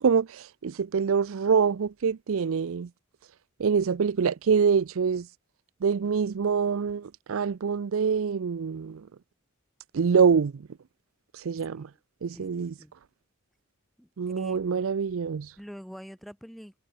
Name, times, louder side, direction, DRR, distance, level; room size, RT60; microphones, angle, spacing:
voice 1, 0.0-2.9 3.6-5.3 5.8-9.1 9.9-10.7 11.3-11.9 12.2-12.7 14.2-15.5, right 6 dB, 70° right, 0.4 m, -25 dB
voice 2, 11.6-11.9 12.3-12.9 14.0-14.1 14.4-14.6 15.6-16.8, equal, ahead, 3.9 m, -45 dB
head